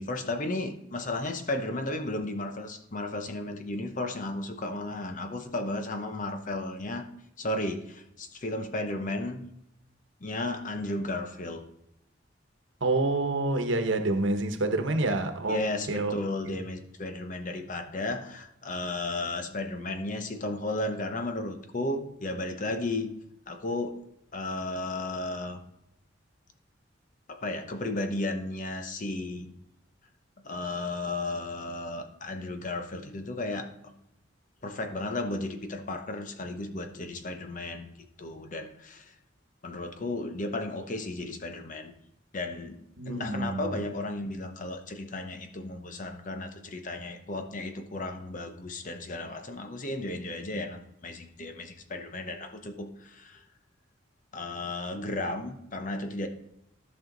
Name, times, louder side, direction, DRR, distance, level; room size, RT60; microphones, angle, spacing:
voice 1, 0.0-7.1 7.4-9.5 10.2-11.6 15.5-23.1 23.5-24.0 24.3-25.6 27.3-29.5 30.4-33.9 34.6-37.9 38.2-39.0 39.6-41.9 42.3-42.8 43.1-53.4 54.3-56.3, left 2 dB, 45° left, 0.9 m, -34 dB
voice 2, 12.8-16.1 16.4-16.5 43.0-43.7, right 2 dB, 90° right, 1.1 m, -28 dB
14.0 x 5.6 x 3.9 m
head